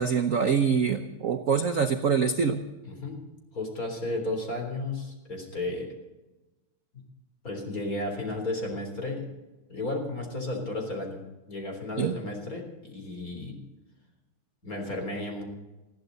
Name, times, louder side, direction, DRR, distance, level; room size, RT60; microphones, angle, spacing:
voice 1, 0.0-2.6 12.0-12.1, right 6 dB, 55° right, 6 dB, 1.0 m, -25 dB
voice 2, 2.8-3.2 3.5-5.9 6.9-7.0 7.4-9.2 9.7-11.2 11.5-13.6 14.6-15.4, left 2 dB, 40° left, 2 dB, 4.2 m, -33 dB
20.5 x 14.5 x 4.0 m, 1.1 s
omnidirectional pair, 2.4 m